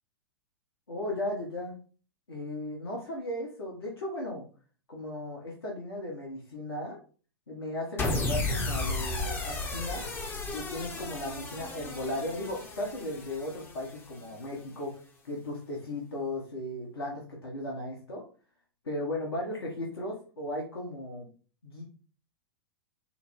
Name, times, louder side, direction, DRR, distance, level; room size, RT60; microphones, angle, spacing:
voice 1, 0.9-1.8 2.3-4.4 4.9-7.0 7.5-10.1 10.5-14.9 15.2-18.2 18.8-21.3 21.6-21.8, left 1 dB, 80° left, -2 dB, 1.3 m, -36 dB
sound 1, 8.0-14.3, left 3 dB, 15° left, 0.7 m, -34 dB
4.8 x 2.1 x 3.5 m, 0.39 s
figure-of-eight pair, 105°, 13 cm